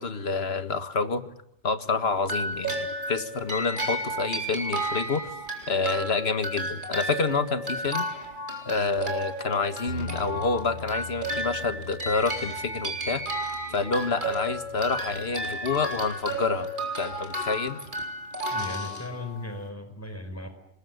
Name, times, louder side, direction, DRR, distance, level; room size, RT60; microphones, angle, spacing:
voice 1, 0.0-1.3 1.6-5.3 5.7-8.1 8.7-13.2 13.7-16.7 17.0-17.8, left 4 dB, 50° left, 10 dB, 1.7 m, -28 dB
sound 1, 2.2-19.6, right 1 dB, 40° right, 4.4 m, -33 dB
Bass guitar, 9.9-16.1, left 3 dB, 70° right, 6.5 m, -43 dB
voice 2, 18.5-20.5, left 2 dB, 10° left, 7 dB, 4.7 m, -37 dB
26.5 x 20.5 x 9.5 m, 0.77 s
omnidirectional pair, 1.3 m